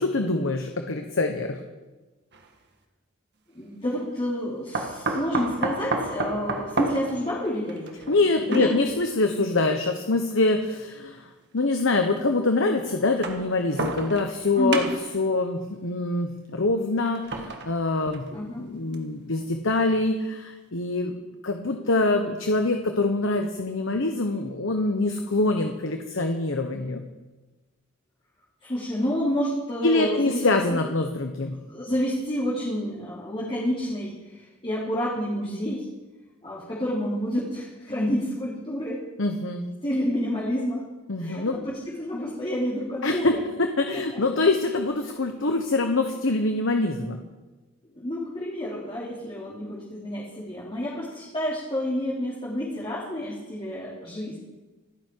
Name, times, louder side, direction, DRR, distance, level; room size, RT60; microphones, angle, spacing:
voice 1, 0.0-1.6 8.1-11.2 11.5-14.9 15.1-18.3 18.6-27.0 29.8-31.6 39.2-39.6 41.1-41.6 43.0-47.2, left 2 dB, 65° left, 5 dB, 1.2 m, -25 dB
sound 1, 2.3-2.5 4.7-9.0 10.0-10.1 11.3-11.4 13.0-14.4 14.7-15.2 17.0-18.4 18.9-19.0 19.4-19.5, right 2 dB, 55° right, 1.7 m, -31 dB
voice 2, 3.5-8.1 8.4-8.7 14.6-14.8 18.3-18.6 28.6-30.5 31.7-35.9 36.4-39.0 39.8-40.9 41.2-43.4 43.9-44.2 47.9-54.4, equal, 25° left, -8 dB, 3.3 m, -29 dB
28.0 x 9.8 x 4.7 m, 1.2 s
head